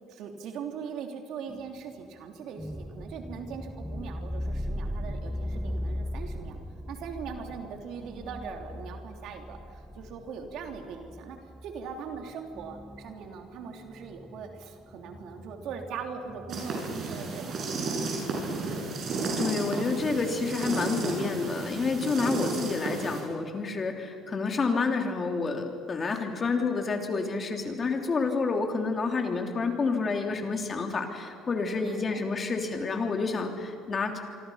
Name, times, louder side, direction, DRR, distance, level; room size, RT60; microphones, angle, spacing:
voice 1, 0.1-6.6 6.9-11.4 11.6-18.4 31.8-32.2, right 6 dB, 70° right, 3 dB, 3.2 m, -40 dB
sound 1, 1.5-1.8 2.6-17.2, equal, ahead, 0.9 m, -39 dB
sound 2, 16.5-23.2, right 3 dB, 50° right, 7.5 m, -32 dB
voice 2, 19.4-34.2, left 4 dB, 35° left, 4 dB, 3.2 m, -29 dB
26.0 x 24.5 x 5.8 m, 2.3 s
supercardioid pair, 85°, 0 cm